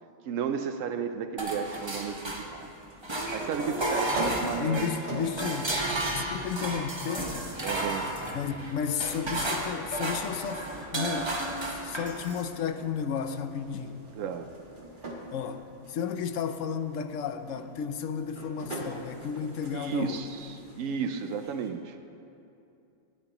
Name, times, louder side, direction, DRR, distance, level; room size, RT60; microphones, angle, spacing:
voice 1, 0.2-2.7 3.3-4.8 7.6-8.1 14.2-14.5 19.7-22.0, right 7 dB, 75° right, 8 dB, 0.9 m, -33 dB
sound 1, 1.4-2.7 3.0-12.5, right 1 dB, 20° right, 1.1 m, -33 dB
sound 2, 2.0-21.7, right 2 dB, 40° right, 1.6 m, -44 dB
voice 2, 4.6-5.7 6.0-7.5 8.3-10.7 10.9-11.3 11.7-14.1 15.3-20.3, left 7 dB, 75° left, 10 dB, 1.0 m, -33 dB
18.5 x 12.0 x 3.0 m, 2.7 s
omnidirectional pair, 1.4 m